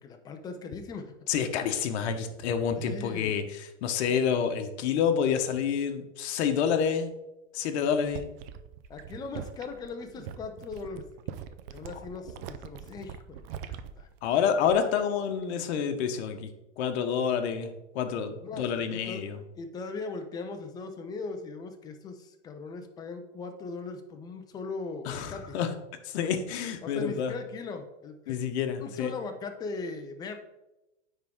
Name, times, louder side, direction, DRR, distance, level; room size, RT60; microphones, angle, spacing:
voice 1, 0.0-1.1 2.8-3.4 8.0-8.3 8.9-11.4 11.7-13.4 13.7-14.1 14.8-14.9 18.4-19.2 19.5-25.6 26.8-28.4 28.8-30.4, left 4 dB, 10° left, 5 dB, 0.4 m, -39 dB
voice 2, 1.3-7.1 7.5-8.3 14.2-16.5 16.8-19.4 25.1-25.7 26.0-27.3 28.3-29.1, left 7 dB, 60° left, 7 dB, 1.0 m, -28 dB
sound 1, 7.9-15.0 15.3-15.7, right 8 dB, 50° right, 0.6 m, -43 dB
9.4 x 3.7 x 3.6 m, 0.97 s
supercardioid pair, 135°, 37 cm